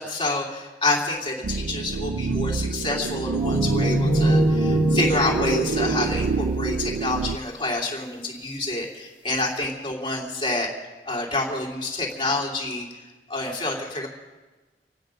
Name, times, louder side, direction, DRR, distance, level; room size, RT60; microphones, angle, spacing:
voice 1, 0.0-10.7 11.1-12.9 13.3-14.1, left 2 dB, 30° left, -2 dB, 3.0 m, -28 dB
sound 1, 1.4-7.4, right 4 dB, 60° right, 0.4 m, -26 dB
sound 2, 3.4-6.8, equal, 5° right, 2.4 m, -24 dB
27.5 x 9.5 x 5.2 m, 1.2 s
head